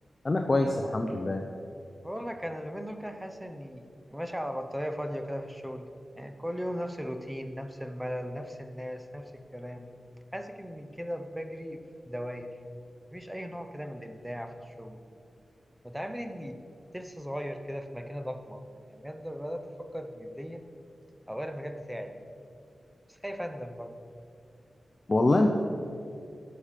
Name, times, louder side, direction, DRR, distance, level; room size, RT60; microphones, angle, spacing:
voice 1, 0.2-1.4 25.1-25.5, left 2 dB, 30° left, 3 dB, 0.7 m, -24 dB
voice 2, 2.0-5.9 6.2-9.9 10.3-12.5 13.1-15.0 15.8-16.6 16.9-20.6 21.3-22.1 23.1-24.0, equal, 5° right, 6 dB, 0.8 m, -37 dB
16.5 x 6.6 x 5.1 m, 2.5 s
wide cardioid pair, 140°, 0 cm